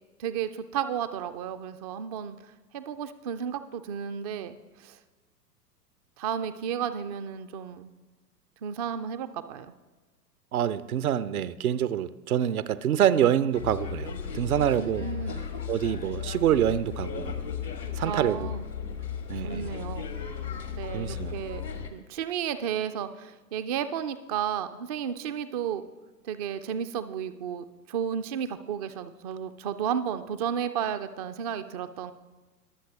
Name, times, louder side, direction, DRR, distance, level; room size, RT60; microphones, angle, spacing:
voice 1, 0.2-2.4 2.7-5.0 6.2-7.9 8.6-9.7 14.8-15.5 18.0-18.6 19.4-20.1 20.7-21.6 21.9-25.8 26.2-32.1, right 8 dB, 25° right, 11 dB, 0.4 m, -33 dB
voice 2, 10.5-15.1 15.7-17.3 17.9-18.5 19.3-19.7 20.9-21.3 21.8-21.9, right 10 dB, 65° right, 16 dB, 0.7 m, -26 dB
sound 1, 13.5-21.9, left 7 dB, 85° left, 1.6 m, -35 dB
22.5 x 7.7 x 3.4 m, 1.3 s
figure-of-eight pair, 95°, 48 cm